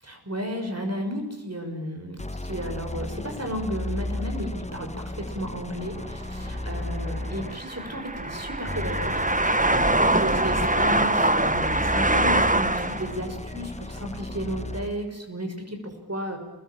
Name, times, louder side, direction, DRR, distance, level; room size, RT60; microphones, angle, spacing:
voice 1, 0.0-9.2 9.6-16.4, equal, 40° right, 4 dB, 6.4 m, -33 dB
sound 1, 2.2-7.8 8.7-15.1, left 2 dB, 15° left, 1.3 m, -34 dB
sound 2, 6.0-13.2, right 2 dB, 20° right, 1.4 m, -24 dB
28.0 x 21.0 x 8.9 m, 1.0 s
wide cardioid pair, 55°, 38 cm